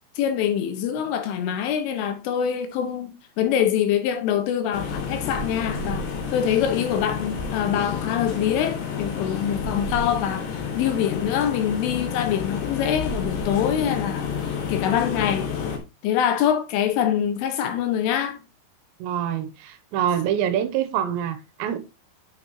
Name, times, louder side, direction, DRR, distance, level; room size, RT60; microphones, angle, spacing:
voice 1, 0.2-15.5 16.0-18.4, left 9 dB, 85° left, 3.9 m, -25 dB
sound 1, 4.7-15.8, left 6 dB, 65° left, 3.8 m, -30 dB
voice 2, 19.0-21.8, right 10 dB, 80° right, 2.9 m, -25 dB
8.7 x 7.1 x 3.0 m
omnidirectional pair, 5.5 m